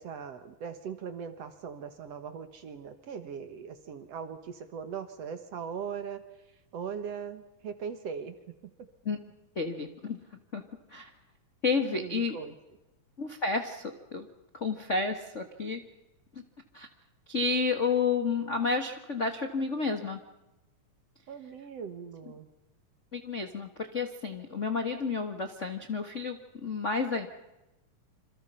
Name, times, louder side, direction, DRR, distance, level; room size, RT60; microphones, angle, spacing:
voice 1, 0.0-6.2 6.7-8.4 8.6-8.9 11.8-12.5 21.3-22.5, right 6 dB, 55° right, 9 dB, 2.1 m, -40 dB
voice 2, 9.5-10.2 10.5-10.6 10.9-11.1 11.6-12.4 13.2-14.3 14.5-15.8 16.3-16.4 16.7-16.9 17.3-20.2 23.1-27.3, left 4 dB, 45° left, 6 dB, 0.9 m, -31 dB
27.5 x 27.0 x 5.7 m, 0.97 s
omnidirectional pair, 4.0 m